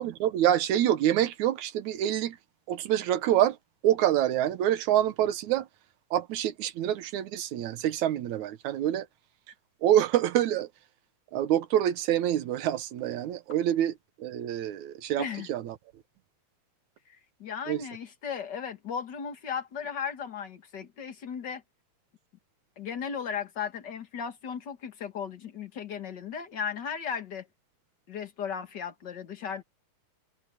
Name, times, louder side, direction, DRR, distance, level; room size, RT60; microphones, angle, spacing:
voice 1, 0.0-2.4 2.7-3.6 3.8-5.7 6.1-9.1 9.8-10.7 11.3-15.8 17.7-17.8, right 11 dB, 70° right, 2.3 m, -26 dB
voice 2, 15.2-15.5 17.1-21.6 22.8-27.5 28.1-29.6, left 7 dB, 45° left, 1.7 m, -36 dB
omnidirectional pair, 3.7 m